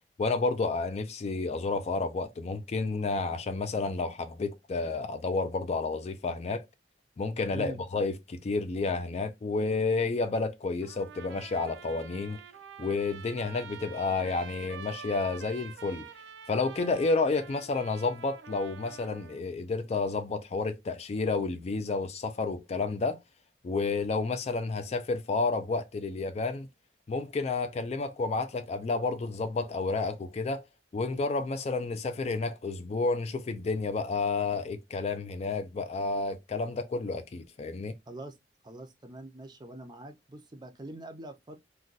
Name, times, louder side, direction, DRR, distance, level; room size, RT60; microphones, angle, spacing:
voice 1, 0.2-6.7 7.2-12.4 12.8-16.1 16.5-23.2 23.6-26.7 27.1-30.6 30.9-37.9, left 3 dB, 35° left, 0.3 m, -30 dB
Trumpet, 10.8-19.4, right 7 dB, 85° right, 0.4 m, -47 dB
voice 2, 38.6-41.6, right 1 dB, 25° right, 0.5 m, -43 dB
2.5 x 2.2 x 3.8 m
head